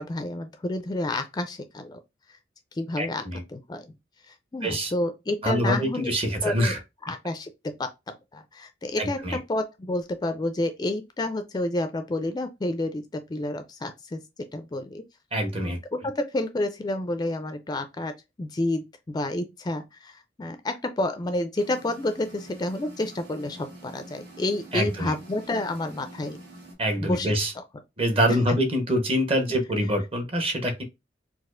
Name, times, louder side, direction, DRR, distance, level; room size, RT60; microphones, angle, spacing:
voice 1, 0.0-2.0 2.7-3.2 3.5-3.9 4.3-6.1 6.4-6.8 7.0-7.5 7.8-7.9 8.3-14.2 14.5-15.0 15.6-18.1 18.4-26.4 27.0-27.3 28.3-28.4, left 2 dB, 20° left, 0.3 m, -29 dB
voice 2, 3.0-3.4 4.6-4.9 5.4-6.8 9.0-9.4 15.3-15.8 24.7-25.1 26.8-27.5 28.0-30.8, equal, 30° right, 0.7 m, -25 dB
sound 1, 21.6-26.7, right 1 dB, 85° right, 1.3 m, -46 dB
4.1 x 2.4 x 2.4 m
head